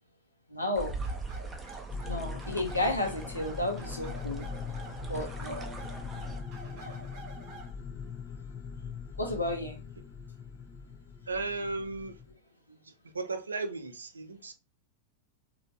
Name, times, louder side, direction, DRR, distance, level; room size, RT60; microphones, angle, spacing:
voice 1, 0.5-1.0 2.1-4.5 5.1-5.8 6.6-7.1 9.2-9.8, left 1 dB, 85° left, 0.9 m, -33 dB
sound 1, 0.7-6.4, right 3 dB, 15° right, 0.6 m, -42 dB
sound 2, 1.0-7.7, right 4 dB, 40° right, 1.1 m, -48 dB
sound 3, 1.9-12.3, left 5 dB, 30° left, 0.4 m, -41 dB
voice 2, 11.3-12.2 12.8-14.5, right 3 dB, 75° right, 0.5 m, -35 dB
3.1 x 2.6 x 2.6 m
figure-of-eight pair, 90°, 0 cm